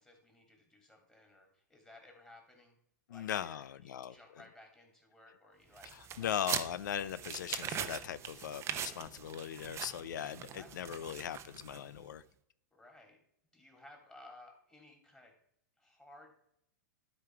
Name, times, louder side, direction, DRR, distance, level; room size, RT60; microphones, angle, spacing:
voice 1, 0.0-2.8 3.1-6.4 10.5-11.0 12.7-13.2 13.5-15.3 15.8-16.3, left 1 dB, 10° left, 1 dB, 2.8 m, -58 dB
voice 2, 3.1-4.1 5.9-12.2, left 10 dB, 80° left, 16 dB, 0.4 m, -39 dB
sound 1, 5.8-12.0, right 9 dB, 25° right, 0.7 m, -41 dB
11.5 x 5.1 x 4.6 m, 0.73 s
hypercardioid pair, 120°, 10 cm